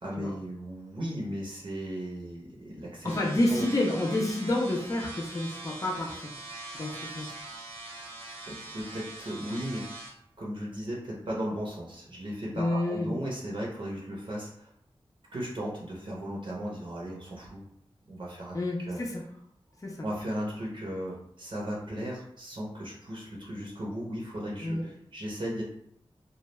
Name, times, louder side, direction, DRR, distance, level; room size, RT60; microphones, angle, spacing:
voice 1, 0.0-3.1 3.5-4.0 8.5-9.9 10.4-14.7 15.3-17.7 18.1-18.5 18.8-19.0 20.0-25.6, equal, 60° right, -4 dB, 0.6 m, -36 dB
voice 2, 3.0-6.3 6.7-7.3 12.5-13.1 18.5-19.2 19.8-20.1 24.6-24.8, left 1 dB, 35° left, -1 dB, 0.5 m, -29 dB
sound 1, 3.1-10.1, right 2 dB, 90° right, 0.8 m, -43 dB
2.2 x 2.1 x 3.0 m, 0.72 s
wide cardioid pair, 75°, 10 cm